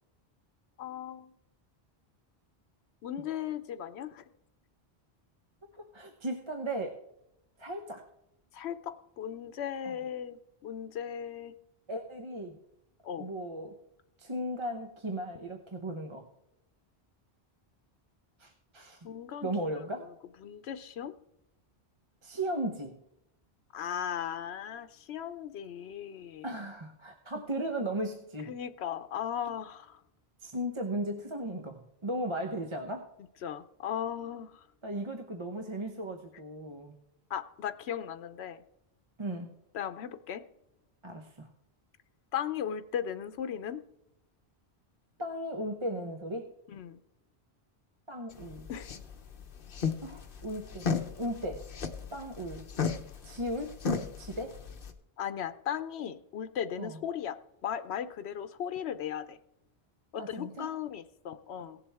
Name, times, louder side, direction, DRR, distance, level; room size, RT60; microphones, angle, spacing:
voice 1, 0.8-1.3 3.0-4.2 8.5-11.5 13.0-13.3 19.0-19.5 20.4-21.1 23.7-26.5 28.5-30.0 33.4-34.6 37.3-38.6 39.7-40.4 42.3-43.8 46.7-47.0 48.7-49.0 55.2-57.4 57.6-59.4 60.1-61.8, left 9 dB, 85° left, 10 dB, 0.9 m, -37 dB
voice 2, 5.9-7.0 7.6-8.0 9.8-9.9 11.9-12.6 13.1-13.7 14.2-16.3 18.4-19.1 19.4-20.1 22.2-23.0 26.4-28.5 30.4-33.0 34.8-36.9 39.2-39.5 41.0-41.5 45.2-46.5 48.1-48.7 50.0-50.9 51.2-51.7 52.1-52.6 53.2-53.7 54.2-54.6 56.8-57.0 60.2-60.7, right 1 dB, 30° right, 3 dB, 0.9 m, -36 dB
sound 1, 48.3-54.9, left 5 dB, 60° left, 1.1 m, -35 dB
17.5 x 7.2 x 3.5 m, 0.81 s
omnidirectional pair, 1.1 m